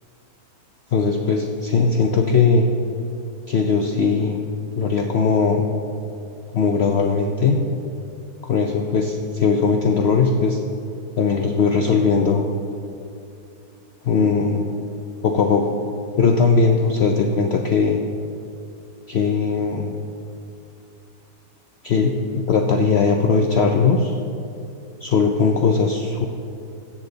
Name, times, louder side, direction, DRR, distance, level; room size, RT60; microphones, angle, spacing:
voice 1, 0.9-2.7 3.5-4.4 4.8-5.7 6.5-7.6 8.5-10.6 11.2-12.5 14.0-14.7 15.2-15.7 16.2-18.0 19.1-20.0 21.8-24.2 25.0-26.3, left 5 dB, 60° left, 3 dB, 0.7 m, -19 dB
16.5 x 7.2 x 4.0 m, 2.6 s
omnidirectional pair, 1.6 m